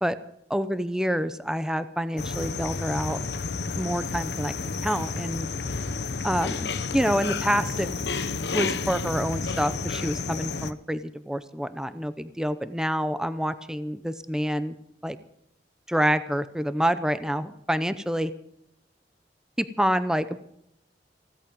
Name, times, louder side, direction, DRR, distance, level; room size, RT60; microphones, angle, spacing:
voice 1, 0.5-3.2 3.8-4.5 4.8-5.5 6.2-7.9 8.5-14.7 15.0-15.2 15.9-18.3 19.6-20.4, equal, 5° right, 12 dB, 0.7 m, -27 dB
sound 1, 2.2-10.7, left 4 dB, 75° left, 1.0 m, -31 dB
16.5 x 13.5 x 5.3 m, 0.74 s
head